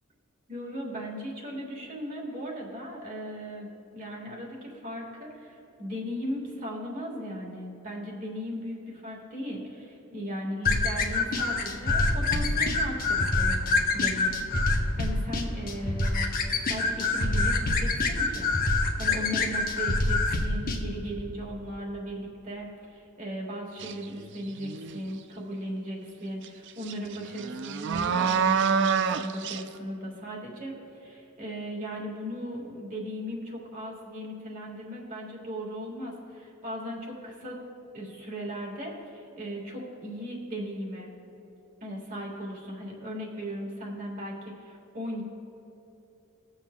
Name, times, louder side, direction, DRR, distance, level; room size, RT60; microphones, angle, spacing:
voice 1, 0.5-16.4 16.6-37.6 37.9-41.1 41.8-45.2, equal, 40° right, -2 dB, 1.7 m, -37 dB
sound 1, 10.6-20.8, left 3 dB, 40° left, 0.8 m, -26 dB
sound 2, 23.8-24.0 24.5-25.1 26.4-26.5 26.8-29.6, right 6 dB, 55° right, 0.4 m, -27 dB
19.5 x 7.2 x 2.2 m, 3.0 s
head